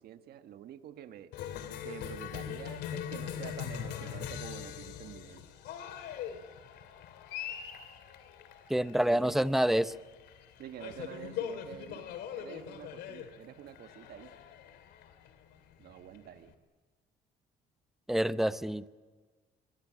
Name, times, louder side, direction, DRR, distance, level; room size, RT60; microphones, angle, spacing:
voice 1, 0.0-1.3 1.8-5.4 9.0-9.5 10.6-14.3 15.8-16.5, right 11 dB, 65° right, 9 dB, 1.4 m, -48 dB
Cheering, 1.3-16.5, left 9 dB, 80° left, 2.7 m, -42 dB
voice 2, 8.7-9.9 18.1-18.9, right 1 dB, ahead, 14 dB, 0.7 m, -27 dB
24.0 x 22.0 x 7.6 m, 1.4 s
cardioid pair, 110°, 17 cm